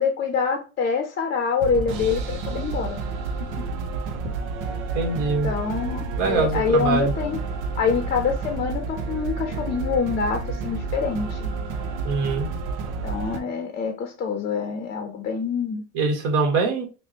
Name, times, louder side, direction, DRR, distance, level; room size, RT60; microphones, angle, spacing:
voice 1, 0.0-3.0 3.4-3.7 5.4-7.4 7.8-11.5 13.0-15.8, left 5 dB, 30° left, 0.6 m, -25 dB
sound 1, 1.6-13.4, right 4 dB, 85° right, 0.8 m, -30 dB
voice 2, 4.9-5.5 6.2-7.1 12.0-12.5 15.9-16.8, right 4 dB, 55° right, 1.4 m, -23 dB
5.8 x 2.2 x 2.8 m
cardioid pair, 125°, 36 cm